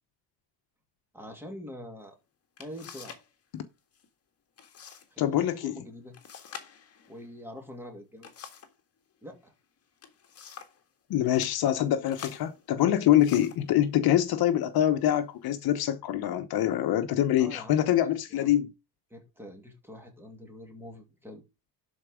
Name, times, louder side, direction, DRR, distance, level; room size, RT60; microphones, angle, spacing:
voice 1, 1.1-2.2 2.6-3.2 5.1-6.2 7.1-8.3 9.2-9.5 12.8-13.0 17.4-18.5 19.1-21.4, left 1 dB, 5° right, 2.5 m, -44 dB
sound 1, 2.1-2.2 2.6-3.3 3.6-4.1 4.6-5.1 5.4-5.5 6.1-8.8 9.8-10.8 11.3-11.5 12.1-13.7 14.5-14.6 15.2-15.7, left 7 dB, 35° left, 1.8 m, -47 dB
voice 2, 5.2-5.7 11.1-18.7, left 12 dB, 60° left, 1.0 m, -25 dB
12.0 x 4.7 x 5.0 m
cardioid pair, 170°, 41 cm